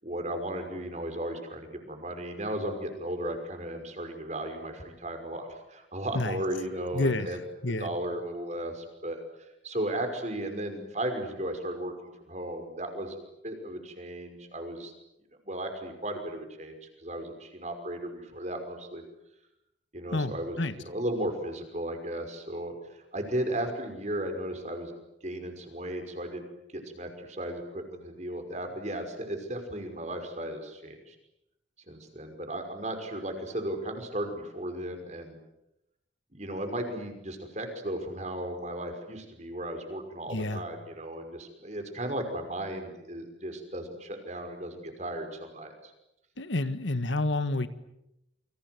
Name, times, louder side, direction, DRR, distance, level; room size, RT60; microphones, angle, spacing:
voice 1, 0.0-7.4 7.8-9.2 9.6-11.9 12.3-14.9 15.5-19.0 19.9-24.9 25.2-26.5 26.7-31.1 31.9-35.4 36.3-45.9, right 1 dB, 35° right, 6 dB, 5.6 m, -35 dB
voice 2, 6.9-7.9 20.1-20.8 40.3-40.6 46.4-47.7, left 2 dB, 80° left, 11 dB, 1.7 m, -29 dB
29.5 x 25.0 x 8.0 m, 0.86 s
head